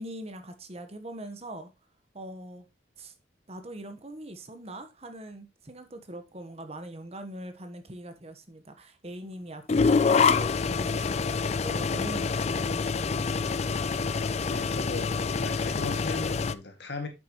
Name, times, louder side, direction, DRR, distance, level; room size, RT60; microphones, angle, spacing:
voice 1, 0.0-1.7 2.1-2.7 3.0-3.1 3.5-13.5, right 1 dB, 35° right, 1.1 m, -42 dB
sound 1, 9.7-16.5, left 5 dB, 35° left, 0.4 m, -26 dB
voice 2, 14.5-17.1, left 3 dB, 65° left, 2.1 m, -37 dB
9.5 x 7.3 x 3.0 m
head